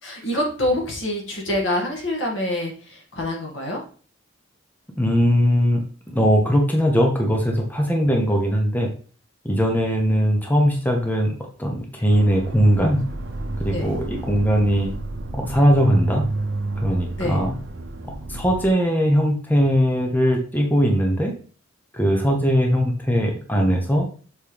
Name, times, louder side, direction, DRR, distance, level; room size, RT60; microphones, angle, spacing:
voice 1, 0.0-3.8 13.7-13.9 17.2-17.4, left 1 dB, 75° left, -1 dB, 2.2 m, -26 dB
voice 2, 5.0-8.9 9.4-13.0 13.6-14.9 15.3-16.2 16.8-17.5 18.3-21.3 21.9-24.1, equal, 10° left, 1 dB, 1.0 m, -20 dB
Accelerating revving vroom, 12.1-18.7, right 2 dB, 75° right, 0.8 m, -30 dB
6.8 x 4.5 x 3.4 m, 0.39 s
head